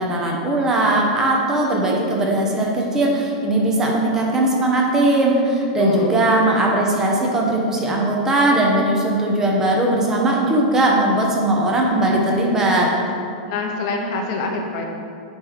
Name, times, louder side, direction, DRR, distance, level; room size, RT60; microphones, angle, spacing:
voice 1, 0.0-12.9, right 1 dB, 10° right, -1 dB, 0.9 m, -19 dB
voice 2, 5.8-6.2 13.5-14.8, left 3 dB, 40° left, 2 dB, 0.9 m, -25 dB
9.1 x 3.4 x 4.9 m, 2.5 s
supercardioid pair, 160°, 4 cm